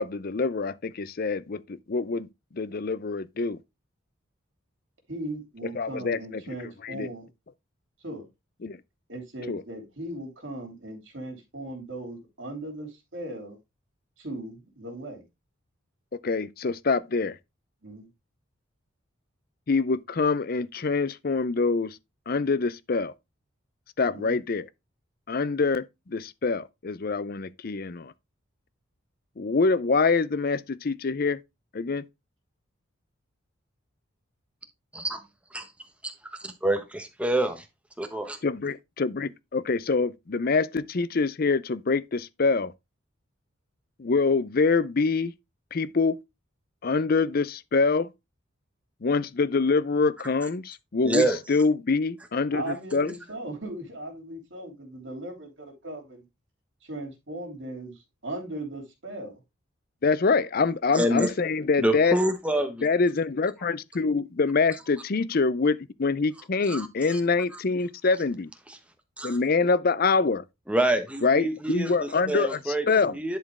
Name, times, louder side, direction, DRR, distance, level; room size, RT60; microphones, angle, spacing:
voice 1, 0.0-3.6 5.7-6.5 6.8-7.1 8.6-8.8 9.5-9.6 16.2-17.4 19.7-22.0 22.3-23.1 24.0-24.7 25.3-28.1 29.4-31.4 31.7-32.1 38.4-42.7 44.0-45.3 45.7-46.2 46.8-48.1 49.0-53.1 60.0-62.2 62.8-68.5 69.2-70.4 71.2-73.1, left 4 dB, 45° left, 0.5 m, -25 dB
voice 2, 5.1-7.3 8.0-8.3 9.1-13.6 14.2-15.2 17.8-18.1 24.1-24.4 52.5-56.2 56.8-59.3 60.9-61.1, right 1 dB, 65° right, 3.0 m, -38 dB
voice 3, 36.6-37.7 38.0-38.4 51.0-51.4 60.9-61.3 61.8-62.8 66.7-67.2 68.7-68.8 69.2-69.4 70.7-73.4, right 1 dB, 5° right, 1.2 m, -27 dB
10.5 x 4.4 x 3.6 m
head